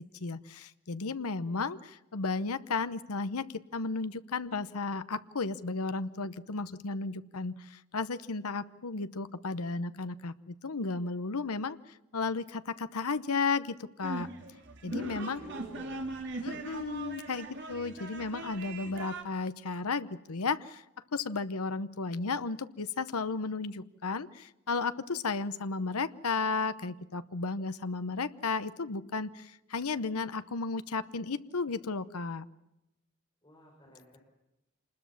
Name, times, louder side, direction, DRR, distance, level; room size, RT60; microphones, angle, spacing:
voice 1, 0.2-7.6 7.9-11.8 12.1-14.3 14.8-15.4 16.4-20.8 21.1-32.4, left 4 dB, 80° left, 13 dB, 0.9 m, -34 dB
sound 1, 14.0-19.2, right 2 dB, 50° right, 3.1 m, -40 dB
voice 2, 14.9-16.0 33.4-34.2, equal, 20° left, -1 dB, 5.2 m, -51 dB
26.5 x 20.5 x 7.2 m, 0.92 s
head